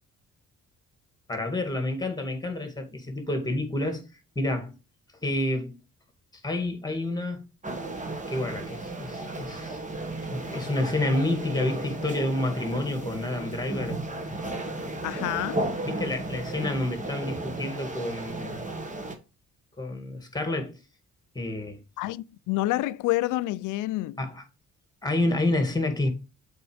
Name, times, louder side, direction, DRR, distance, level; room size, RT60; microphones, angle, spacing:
voice 1, 1.3-4.0 4.4-4.7 5.2-5.8 6.4-7.4 8.3-9.8 10.3-14.0 15.8-18.7 19.8-20.8 21.3-21.8 24.2-24.4 25.0-26.1, left 2 dB, 15° left, 2.1 m, -29 dB
sound 1, 7.6-19.1, right 2 dB, 25° right, 1.5 m, -34 dB
voice 2, 15.0-15.6 22.0-24.2, left 17 dB, 85° left, 0.5 m, -28 dB
6.9 x 4.5 x 5.0 m
cardioid pair, 90°, 30 cm